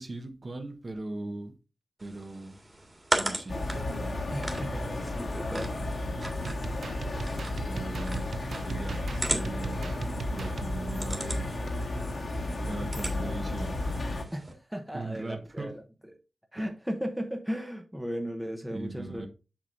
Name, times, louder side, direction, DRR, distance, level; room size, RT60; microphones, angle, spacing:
voice 1, 0.0-1.5 2.0-2.6 3.2-3.6 7.7-8.3 8.6-9.0 9.3-10.0 10.3-11.6 12.6-13.8 14.9-15.8 16.6-16.7 18.7-19.3, right 2 dB, 35° right, 1.1 m, -38 dB
sound 1, 2.0-14.5, right 1 dB, 20° right, 1.9 m, -38 dB
sound 2, 3.5-14.2, left 1 dB, 60° left, 1.7 m, -33 dB
voice 2, 4.3-5.7 14.3-15.7 16.5-19.3, equal, 5° right, 0.9 m, -36 dB
sound 3, 6.4-10.7, right 5 dB, 70° right, 0.3 m, -40 dB
7.4 x 6.9 x 2.6 m
wide cardioid pair, 125°, 0 cm